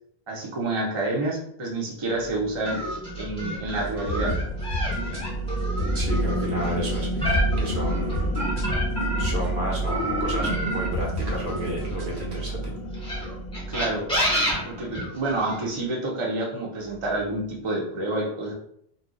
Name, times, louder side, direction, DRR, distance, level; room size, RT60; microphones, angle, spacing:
voice 1, 0.3-2.8 3.2-4.4 13.7-14.1 14.6-18.5, right 2 dB, 35° right, -2 dB, 0.6 m, -28 dB
sound 1, 2.1-15.7, right 1 dB, 50° left, 0.8 m, -31 dB
sound 2, 2.6-9.4 9.9-12.2 12.9-15.6, equal, 5° left, 0.8 m, -29 dB
sound 3, 3.9-10.3 10.7-12.2, equal, 55° right, 1.0 m, -33 dB
voice 2, 5.9-8.3 9.2-12.7, equal, 80° right, -3 dB, 1.3 m, -32 dB
2.7 x 2.2 x 3.7 m, 0.69 s
omnidirectional pair, 1.1 m